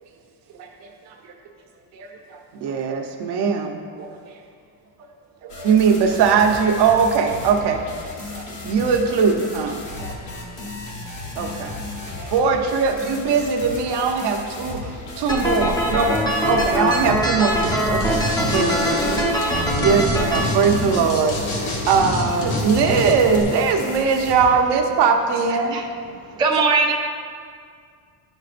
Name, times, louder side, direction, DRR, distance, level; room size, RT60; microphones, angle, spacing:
voice 1, 0.5-1.3 1.9-2.7 4.0-4.4 5.4-5.7 8.3-8.5 10.0-10.1 10.6-10.7 12.1-12.3 16.6-16.7, right 4 dB, 75° right, 1 dB, 1.2 m, -42 dB
voice 2, 2.6-3.8 5.6-7.8 8.6-9.8 11.4-11.7 12.3-16.1 16.4-18.2 18.5-25.8, right 5 dB, 60° right, 3 dB, 0.9 m, -20 dB
sound 1, 5.5-24.6, left 3 dB, 40° left, 1.3 m, -35 dB
sound 2, 15.3-20.4, equal, 10° left, 0.7 m, -22 dB
sound 3, 17.6-17.7 18.0-23.4, left 2 dB, 85° left, 1.8 m, -26 dB
voice 3, 25.5-26.9, right 4 dB, 10° right, -1 dB, 0.3 m, -22 dB
10.5 x 6.4 x 2.5 m, 2.1 s
cardioid pair, 150°, 45 cm